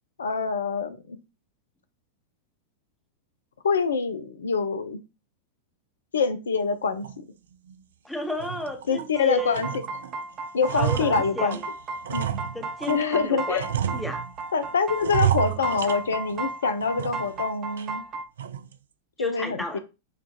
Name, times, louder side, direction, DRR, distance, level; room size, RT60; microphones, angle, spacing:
voice 1, 0.2-1.2 3.6-5.0 6.1-7.1 8.9-9.7 10.5-11.6 12.1-12.5 12.9-13.7 14.5-18.0 19.2-19.8, left 5 dB, 70° left, 11 dB, 0.4 m, -25 dB
sound 1, 7.0-7.2 7.7-7.8 8.2-9.1 9.5-10.1 10.4-13.1 13.5-14.5 15.0-16.5 16.8-17.4 17.8-17.9 18.4-18.7, right 10 dB, 65° right, 0.3 m, -30 dB
voice 2, 8.0-9.6 10.7-11.6 12.5-13.6 13.9-14.2 15.5-16.0 19.2-19.8, equal, 5° left, 4 dB, 0.9 m, -32 dB
sound 2, 9.1-18.2, right 3 dB, 30° right, 0.7 m, -35 dB
7.1 x 2.4 x 2.8 m, 0.28 s
figure-of-eight pair, 90°, 0 cm